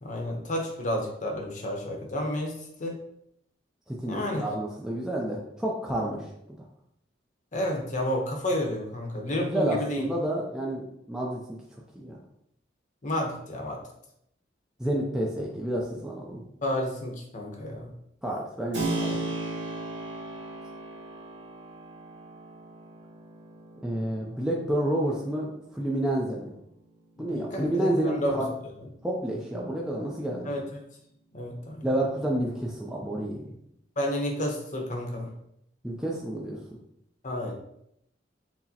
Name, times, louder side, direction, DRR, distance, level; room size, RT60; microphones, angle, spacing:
voice 1, 0.0-3.0 4.1-4.5 7.5-10.1 13.0-13.8 16.6-17.9 27.2-28.4 30.4-30.6 31.3-31.8 34.0-35.3 37.2-37.5, left 1 dB, 40° left, 1 dB, 0.7 m, -31 dB
voice 2, 3.9-6.6 9.4-11.4 12.0-12.2 14.8-16.4 18.2-19.2 23.8-26.5 27.2-28.5 29.0-30.5 31.8-33.6 35.8-36.6, right 1 dB, 5° right, -3 dB, 0.4 m, -30 dB
Keyboard (musical), 18.7-27.3, right 2 dB, 70° right, 1.4 m, -37 dB
5.9 x 2.0 x 2.8 m, 0.75 s
head